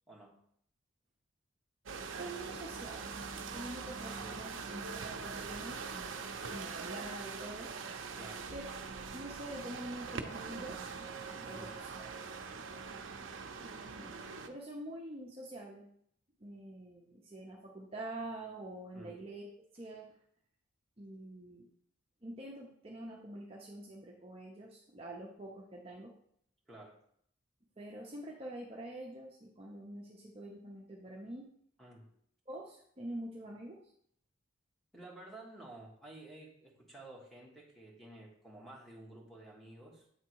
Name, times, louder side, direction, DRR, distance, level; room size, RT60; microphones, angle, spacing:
voice 1, 0.1-0.4 4.1-4.4 8.1-8.5 11.4-11.9 18.9-19.2 26.7-27.0 31.8-32.1 34.9-40.1, right 1 dB, ahead, -3 dB, 1.3 m, -52 dB
sound 1, 1.9-14.5, right 5 dB, 70° right, 0.6 m, -43 dB
voice 2, 2.1-7.7 8.5-8.7 9.1-10.9 11.5-12.1 13.6-14.2 14.5-15.9 16.4-19.5 19.7-20.2 21.0-21.7 22.2-26.1 27.8-31.5 32.5-33.9, right 1 dB, 30° right, -2 dB, 0.7 m, -46 dB
8.2 x 3.6 x 4.6 m, 0.68 s
head